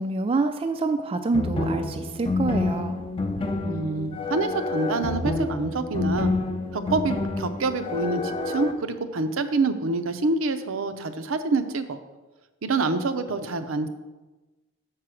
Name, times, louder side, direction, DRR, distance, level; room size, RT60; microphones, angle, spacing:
voice 1, 0.0-3.0, right 3 dB, 30° right, 7 dB, 0.3 m, -26 dB
sound 1, 1.3-8.7, left 3 dB, 25° left, 0.5 m, -28 dB
voice 2, 3.6-6.3 6.7-12.0 12.6-13.9, right 3 dB, 80° right, 10 dB, 0.6 m, -26 dB
6.6 x 4.7 x 6.2 m, 1.1 s
head